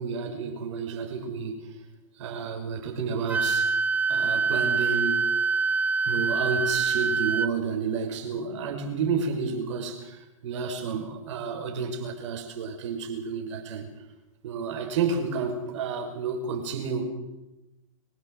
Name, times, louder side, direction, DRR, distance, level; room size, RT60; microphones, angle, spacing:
voice 1, 0.0-1.7 2.2-3.7 4.1-5.2 6.0-13.9 14.4-17.1, right 5 dB, 60° right, 3 dB, 6.0 m, -31 dB
Wind instrument woodwind instrument, 3.3-7.5, right 4 dB, 10° right, 0.7 m, -25 dB
25.0 x 16.5 x 8.0 m, 0.99 s
hypercardioid pair, 125°, 18 cm